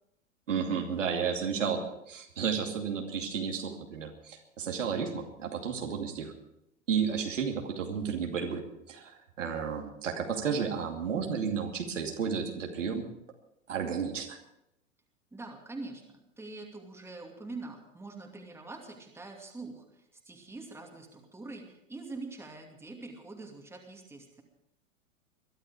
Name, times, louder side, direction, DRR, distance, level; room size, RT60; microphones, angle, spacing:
voice 1, 0.5-1.8 2.1-6.3 6.9-8.6 8.9-13.1 13.7-14.4, right 6 dB, 70° right, 2 dB, 2.7 m, -32 dB
voice 2, 15.3-24.4, right 3 dB, 5° right, 2 dB, 2.5 m, -44 dB
22.0 x 12.5 x 4.9 m, 0.82 s
figure-of-eight pair, 100°, 39 cm